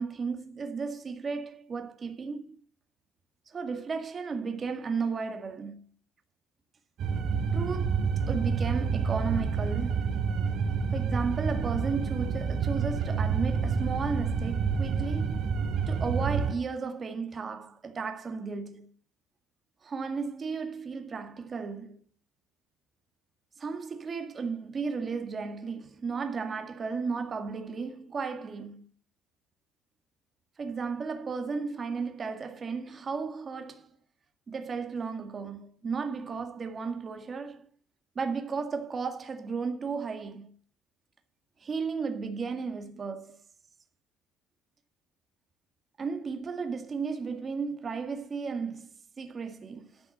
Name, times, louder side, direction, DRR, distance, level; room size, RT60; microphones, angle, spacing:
voice 1, 0.0-2.6 3.5-5.8 7.5-10.1 10.9-15.4 15.9-18.9 19.8-22.0 23.6-28.9 30.6-34.0 34.5-37.7 38.2-40.5 41.6-43.4 46.0-50.0, right 5 dB, 30° right, 1.8 m, -34 dB
dusty ventilation exhaust, 7.0-16.5, right 5 dB, 55° right, 3.3 m, -28 dB
13.0 x 6.0 x 7.8 m
cardioid pair, 135°, 0 cm